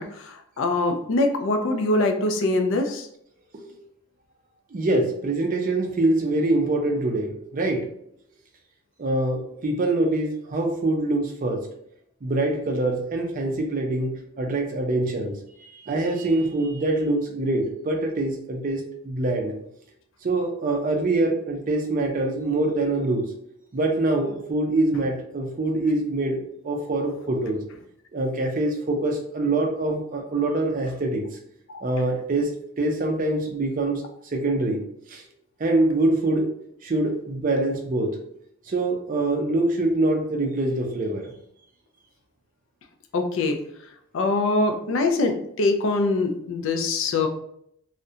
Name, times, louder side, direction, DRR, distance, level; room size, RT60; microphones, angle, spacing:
voice 1, 0.0-3.1 31.7-31.8 43.1-43.6 44.1-47.3, left 2 dB, 60° left, 5 dB, 0.4 m, -23 dB
voice 2, 4.7-7.9 9.0-11.7 12.2-15.3 15.6-19.5 20.2-23.3 23.7-27.6 28.1-31.2 31.8-32.5 32.8-34.0 34.3-34.8 35.1-35.2 35.6-36.5 36.8-38.2 38.7-41.3, right 2 dB, 35° right, 2 dB, 0.4 m, -24 dB
2.4 x 2.1 x 2.7 m, 0.71 s
head